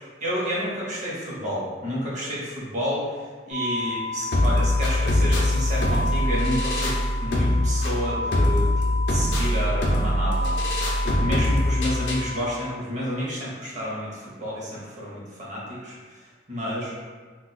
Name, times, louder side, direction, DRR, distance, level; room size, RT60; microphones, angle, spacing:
voice 1, 0.2-10.5 11.0-16.9, equal, 40° right, -5 dB, 0.7 m, -30 dB
sound 1, 3.5-12.5, left 3 dB, 75° right, 0.7 m, -33 dB
sound 2, 4.3-12.3, left 1 dB, 60° left, 0.5 m, -23 dB
2.3 x 2.2 x 3.9 m, 1.5 s
head